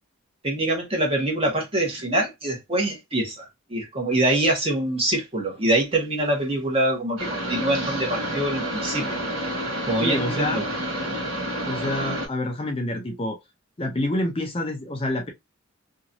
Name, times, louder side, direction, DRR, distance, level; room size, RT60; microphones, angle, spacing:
voice 1, 0.4-9.2 9.9-10.6, right 1 dB, 25° right, 1.2 m, -24 dB
sound 1, 7.2-12.3, equal, 80° right, 1.6 m, -29 dB
voice 2, 10.0-10.6 11.6-13.4 13.8-15.3, left 1 dB, 25° left, 0.5 m, -27 dB
2.9 x 2.5 x 2.5 m
head